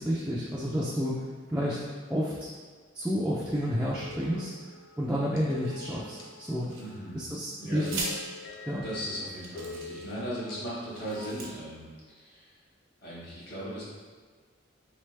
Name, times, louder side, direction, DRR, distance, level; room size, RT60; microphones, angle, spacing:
voice 1, 0.0-2.5 2.9-6.7 7.1-8.1 8.7-8.8, equal, 5° right, -7 dB, 0.3 m, -31 dB
sound 1, 3.8-7.0 7.8-11.3, left 2 dB, 80° left, 0.5 m, -45 dB
sound 2, 6.7-7.2 7.8-8.1 8.9-9.0 9.4-10.3 10.9-11.5, right 3 dB, 85° right, 0.8 m, -38 dB
voice 2, 6.8-7.2 7.6-7.8 8.8-11.9 12.1-12.5 13.0-13.8, equal, 50° left, -9 dB, 1.5 m, -37 dB
3.3 x 3.3 x 3.2 m, 1.5 s
head